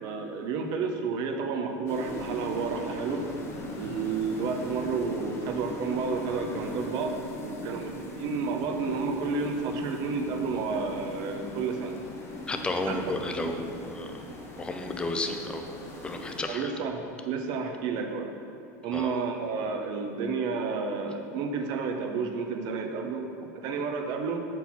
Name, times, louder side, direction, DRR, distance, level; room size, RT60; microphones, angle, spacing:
voice 1, 0.0-3.3 3.7-12.0 12.9-13.5 16.5-18.3 18.8-24.4, right 5 dB, 50° right, 4 dB, 0.6 m, -31 dB
sound 1, 1.9-16.4, left 1 dB, 30° left, 0.8 m, -39 dB
voice 2, 12.5-14.1 14.6-15.8 16.0-16.7 18.9-19.2, left 2 dB, 10° left, 5 dB, 0.4 m, -32 dB
4.5 x 4.3 x 5.5 m, 2.8 s
supercardioid pair, 120°, 9 cm